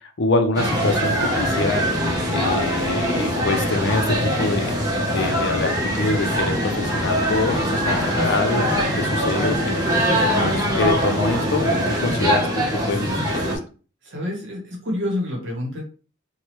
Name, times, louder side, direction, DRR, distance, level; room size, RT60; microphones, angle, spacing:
voice 1, 0.2-1.8 2.3-4.7 5.1-8.6 9.0-9.9 10.2-13.5, left 3 dB, 55° left, 6 dB, 0.5 m, -25 dB
London Underground- escalators at Baker Street, 0.5-13.6, equal, 15° right, 0.7 m, -22 dB
voice 2, 14.0-15.8, left 1 dB, 60° right, 0 dB, 0.9 m, -29 dB
3.1 x 2.2 x 2.9 m, 0.37 s
head